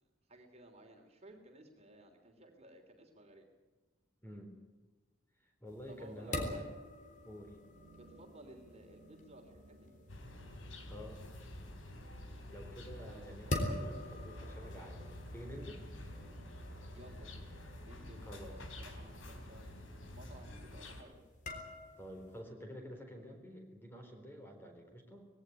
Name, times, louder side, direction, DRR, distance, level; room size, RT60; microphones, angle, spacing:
voice 1, 0.3-3.5 5.9-6.7 8.0-9.9 13.0-13.5 16.9-21.2, right 1 dB, 35° right, 3 dB, 3.2 m, -57 dB
voice 2, 4.2-4.6 5.6-6.6 7.2-7.6 10.8-11.2 12.5-15.0 15.3-15.9 18.2-18.6 22.0-25.3, equal, 10° left, 4 dB, 4.1 m, -49 dB
sound 1, 5.7-22.4, left 1 dB, 40° left, 3.7 m, -46 dB
sound 2, 10.1-21.0, left 1 dB, 85° left, 3.7 m, -49 dB
20.0 x 17.0 x 9.7 m, 1.2 s
head